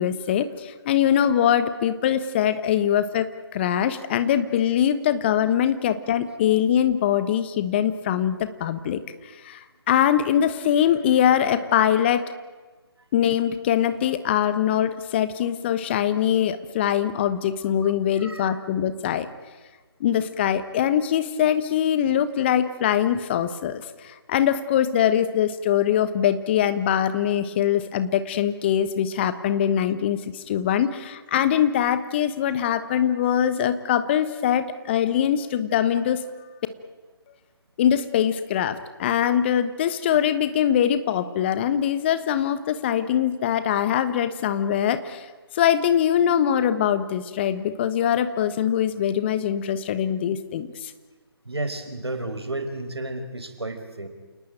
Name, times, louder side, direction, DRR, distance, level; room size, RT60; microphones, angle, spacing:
voice 1, 0.0-9.0 9.4-9.6 9.9-12.3 13.1-19.3 20.0-36.2 37.8-45.2 45.5-50.9, left 10 dB, 25° left, 12 dB, 1.2 m, -22 dB
voice 2, 17.8-18.6 51.4-54.1, right 2 dB, 80° right, 7 dB, 4.9 m, -32 dB
28.5 x 19.5 x 9.1 m, 1.3 s
figure-of-eight pair, 145°, 13 cm